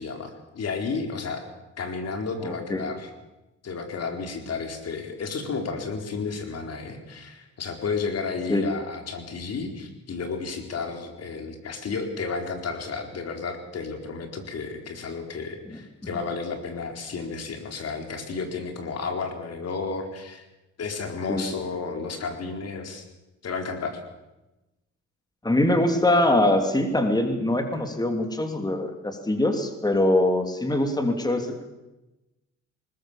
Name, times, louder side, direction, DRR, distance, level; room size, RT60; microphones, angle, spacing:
voice 1, 0.0-1.5 1.8-3.1 3.6-20.4 20.8-23.0 23.4-24.0, left 4 dB, 55° left, 4 dB, 4.2 m, -32 dB
voice 2, 2.4-2.8 8.5-8.6 15.7-15.8 21.3-21.4 25.4-31.6, left 1 dB, 15° left, 6 dB, 2.9 m, -23 dB
20.5 x 20.0 x 7.4 m, 1.0 s
cardioid pair, 90°, 30 cm